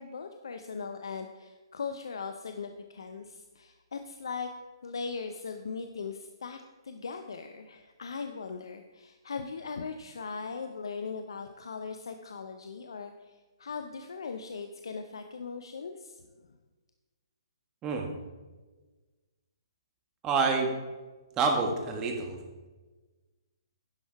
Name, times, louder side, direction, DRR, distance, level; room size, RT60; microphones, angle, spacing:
voice 1, 0.0-4.5 4.8-6.6 6.8-16.2, left 5 dB, 75° left, 7 dB, 0.6 m, -39 dB
voice 2, 20.2-20.7 21.4-22.4, right 4 dB, 20° right, 2 dB, 1.5 m, -27 dB
10.5 x 6.3 x 4.7 m, 1.3 s
hypercardioid pair, 135°, 3 cm